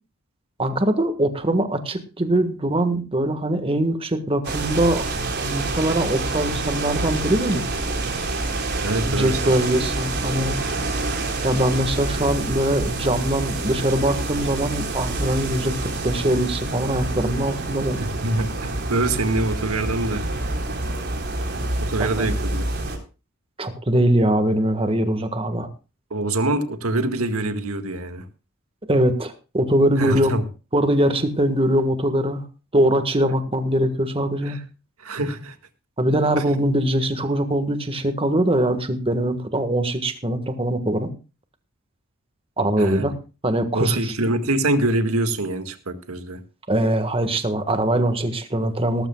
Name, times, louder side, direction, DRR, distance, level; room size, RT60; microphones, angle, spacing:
voice 1, 0.6-5.0 5.4-7.6 9.0-10.6 11.4-18.0 22.0-22.3 23.6-25.7 28.9-30.3 30.7-32.4 32.7-34.6 36.0-41.1 42.6-43.1 43.4-44.1 46.7-49.1, right 1 dB, 25° right, 8 dB, 1.6 m, -22 dB
sound 1, 4.4-23.0, right 2 dB, 50° right, 3.9 m, -27 dB
voice 2, 8.8-9.6 18.0-20.3 21.8-22.7 26.1-28.3 30.0-30.4 34.4-34.6 35.0-35.6 36.4-36.5 42.8-43.1 43.7-46.4, right 2 dB, 85° right, 8 dB, 1.8 m, -24 dB
18.5 x 14.0 x 2.3 m, 0.32 s
head